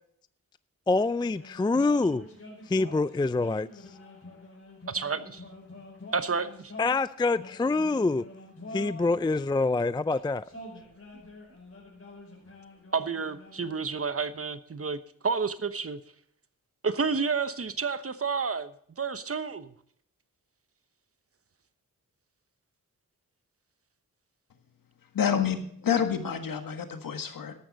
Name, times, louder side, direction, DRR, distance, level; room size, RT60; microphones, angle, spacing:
voice 1, 0.9-2.2 2.7-3.7 6.8-8.2 8.7-10.4, left 3 dB, 15° left, 0.4 m, -26 dB
sound 1, 1.2-9.3 10.0-14.1, left 1 dB, 45° left, 5.3 m, -46 dB
voice 2, 4.9-5.4 6.1-6.7 12.9-16.0 16.8-18.7 19.0-19.7, right 5 dB, 45° right, 1.0 m, -30 dB
voice 3, 25.1-27.5, left 8 dB, 80° left, 1.6 m, -28 dB
14.0 x 11.5 x 4.0 m
cardioid pair, 45°, 33 cm